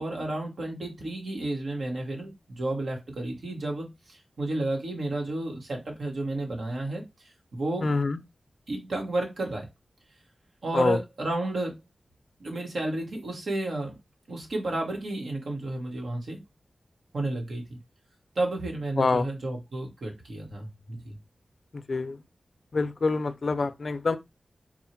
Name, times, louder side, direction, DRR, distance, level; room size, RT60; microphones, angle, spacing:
voice 1, 0.0-7.9 8.7-9.7 10.6-11.8 12.4-14.0 14.3-16.4 17.1-17.8 18.3-21.2, right 2 dB, 85° right, 1.2 m, -32 dB
voice 2, 7.8-8.2 10.7-11.0 19.0-19.3 21.7-22.2 22.7-24.2, left 3 dB, 65° left, 0.5 m, -26 dB
4.4 x 2.1 x 4.4 m
cardioid pair, 45°, 0 cm